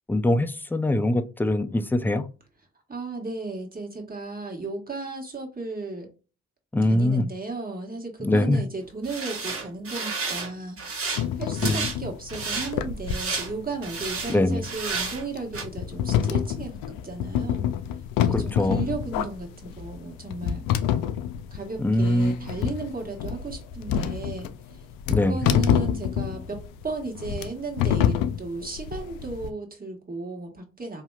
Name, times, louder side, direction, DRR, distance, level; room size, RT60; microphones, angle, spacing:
voice 1, 0.1-2.3 6.7-7.2 8.2-8.6 11.6-11.9 14.3-14.6 18.3-18.9 21.8-22.5 25.1-25.4, left 1 dB, 5° left, 10 dB, 0.5 m, -23 dB
voice 2, 2.9-6.1 6.8-10.8 11.3-17.7 18.2-20.6 21.5-24.8 25.3-31.0, right 3 dB, 25° right, 1 dB, 1.6 m, -35 dB
sound 1, 9.0-10.5 10.8-11.2 11.6-12.0 12.3-12.7 13.1-13.5 13.8-14.4 14.6-15.2 15.5-15.6, right 4 dB, 45° right, 1.4 m, -31 dB
sound 2, 11.2-29.5, left 9 dB, 80° left, 0.5 m, -28 dB
4.1 x 2.8 x 2.4 m, 0.33 s
hypercardioid pair, 45°, 33 cm